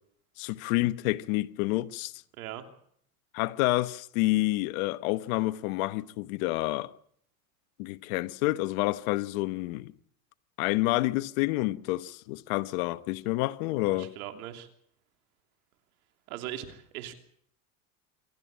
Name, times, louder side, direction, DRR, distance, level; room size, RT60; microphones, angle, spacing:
voice 1, 0.4-2.1 3.3-6.9 7.8-9.9 10.6-14.1, left 19 dB, 75° left, 1.0 m, -28 dB
voice 2, 2.3-2.6 13.9-14.7 16.3-17.1, right 12 dB, 85° right, 3.0 m, -39 dB
26.0 x 13.0 x 8.9 m
supercardioid pair, 110°, 42 cm